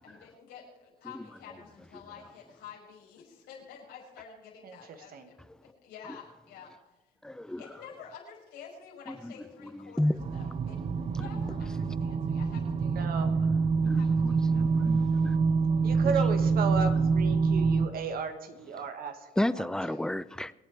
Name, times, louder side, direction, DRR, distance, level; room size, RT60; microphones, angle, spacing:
voice 1, 0.0-5.4 5.6-6.7 7.6-13.6 13.9-14.9 19.8-20.0, left 7 dB, 90° left, 6.0 m, -50 dB
voice 2, 4.6-5.3 12.8-13.3 15.8-19.6, right 5 dB, 60° right, 1.7 m, -34 dB
voice 3, 7.2-7.6 9.1-9.3 9.6-10.2 11.2-11.3 13.8-15.4 19.4-20.5, left 1 dB, 5° left, 0.5 m, -32 dB
sound 1, 10.2-17.9, right 5 dB, 35° right, 0.9 m, -26 dB
26.0 x 8.7 x 4.6 m
cardioid pair, 110°, 17 cm